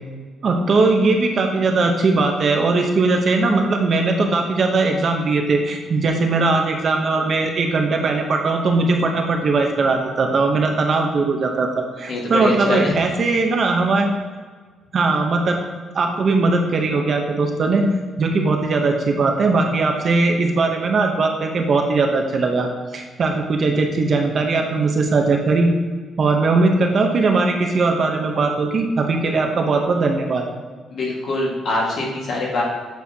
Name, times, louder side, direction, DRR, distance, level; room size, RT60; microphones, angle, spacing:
voice 1, 0.4-14.1 14.9-15.6 15.9-17.9 18.2-25.7 26.2-30.4, right 3 dB, 40° right, 3 dB, 0.8 m, -19 dB
voice 2, 12.1-13.0 30.9-32.6, left 2 dB, 55° left, -3 dB, 1.7 m, -23 dB
8.1 x 6.1 x 2.8 m, 1.5 s
cardioid pair, 160°, 0 cm